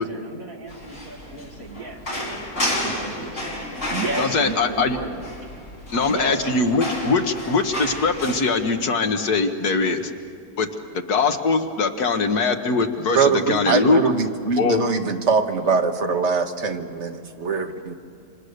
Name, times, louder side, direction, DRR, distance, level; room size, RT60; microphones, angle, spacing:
voice 1, 0.0-2.3 2.6-5.2 5.9-6.5, right 3 dB, 65° right, 2 dB, 2.8 m, -33 dB
sound 1, 0.7-8.4, left 1 dB, 45° left, 4.7 m, -31 dB
voice 2, 4.2-5.0 5.9-10.1 10.6-14.0 14.6-14.8, left 4 dB, 80° left, 6 dB, 1.9 m, -22 dB
voice 3, 13.1-17.9, right 5 dB, 50° right, 5 dB, 1.7 m, -22 dB
28.0 x 26.0 x 6.7 m, 2.4 s
omnidirectional pair, 1.6 m